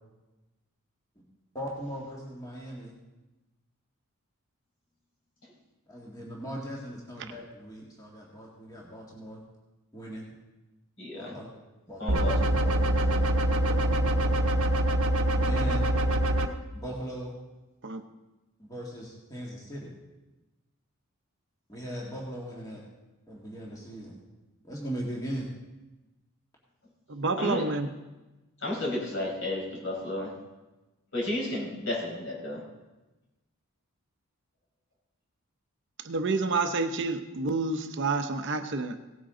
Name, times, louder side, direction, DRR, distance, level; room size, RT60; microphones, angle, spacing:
voice 1, 1.5-2.9 5.9-9.4 9.9-10.3 11.1-11.5 11.9-12.4 15.3-15.8 16.7-17.3 18.6-19.9 21.7-22.8 23.3-24.1 24.6-25.5, right 1 dB, 15° left, -3 dB, 2.0 m, -39 dB
voice 2, 11.0-11.3 12.0-13.2 27.4-27.6 28.6-30.3 31.1-32.6, left 1 dB, 60° left, -4 dB, 5.0 m, -33 dB
sound 1, 12.1-16.5, right 1 dB, 80° right, 1.0 m, -24 dB
voice 3, 27.1-27.9 36.0-39.0, right 3 dB, 55° right, 7 dB, 0.8 m, -29 dB
17.5 x 9.1 x 3.8 m, 1.1 s
head